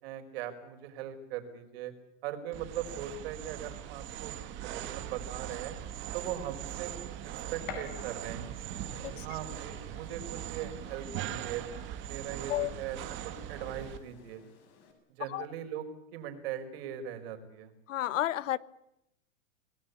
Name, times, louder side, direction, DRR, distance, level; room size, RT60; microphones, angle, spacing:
voice 1, 0.0-1.9 2.2-4.3 4.6-5.8 6.1-6.9 7.5-8.6 9.2-11.6 12.0-13.0 13.2-14.4 15.2-15.9 16.1-17.7, right 10 dB, 50° right, 4.9 m, -39 dB
sound 1, 2.5-14.0, right 11 dB, 30° right, 2.3 m, -41 dB
Gunshot gunfire, 4.9-14.9, left 6 dB, 40° left, 7.0 m, -52 dB
voice 2, 17.9-18.6, left 13 dB, 70° left, 1.2 m, -31 dB
28.0 x 19.5 x 8.3 m
supercardioid pair, 155°, 39 cm